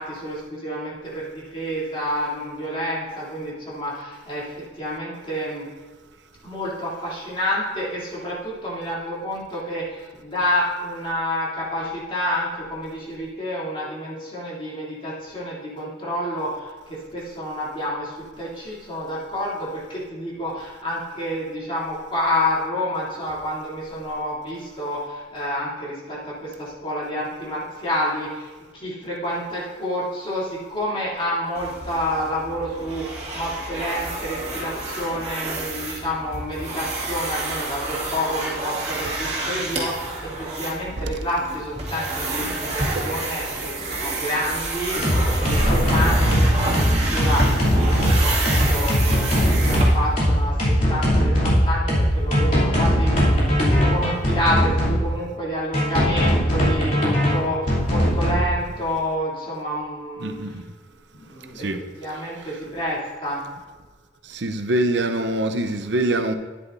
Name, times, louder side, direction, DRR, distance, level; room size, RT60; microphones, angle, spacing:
voice 1, 0.0-5.7 6.4-60.4 61.1-61.6 62.0-63.4, left 1 dB, 30° left, -7 dB, 2.9 m, -29 dB
sound 1, 31.5-50.3, right 2 dB, 35° right, 2.3 m, -29 dB
sound 2, 44.9-55.0 55.7-58.4, equal, 50° left, 2.9 m, -20 dB
voice 2, 60.2-60.6 61.6-61.8 64.3-66.3, right 1 dB, 80° right, 6 dB, 0.7 m, -24 dB
13.0 x 10.0 x 2.7 m, 1.4 s
head